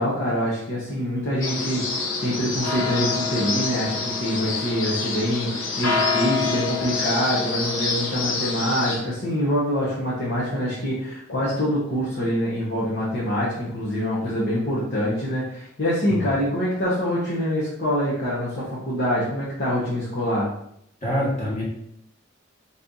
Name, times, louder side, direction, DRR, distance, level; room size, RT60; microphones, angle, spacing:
voice 1, 0.0-20.5, equal, 55° left, -8 dB, 1.1 m, -25 dB
sound 1, 1.4-9.0, left 4 dB, 80° left, 0.9 m, -26 dB
voice 2, 21.0-21.6, equal, 35° left, -6 dB, 1.7 m, -26 dB
4.1 x 3.3 x 3.9 m, 0.73 s
head